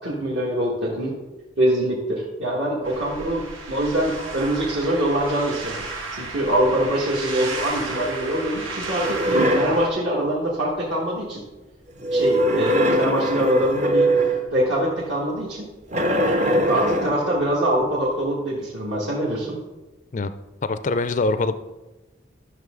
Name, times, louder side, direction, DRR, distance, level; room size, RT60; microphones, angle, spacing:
voice 1, 0.0-1.1 1.6-3.4 3.7-5.8 6.1-11.4 12.1-14.1 14.5-15.7 16.4-19.6, right 1 dB, 65° right, -7 dB, 1.9 m, -24 dB
sound 1, 2.8-9.9, right 3 dB, 85° right, 2.0 m, -33 dB
sound 2, 9.0-9.8 12.0-14.5 15.9-17.3, right 1 dB, 35° right, 0.8 m, -21 dB
voice 2, 20.6-21.5, left 3 dB, 40° left, 12 dB, 0.4 m, -23 dB
12.5 x 6.4 x 3.8 m, 1.1 s
head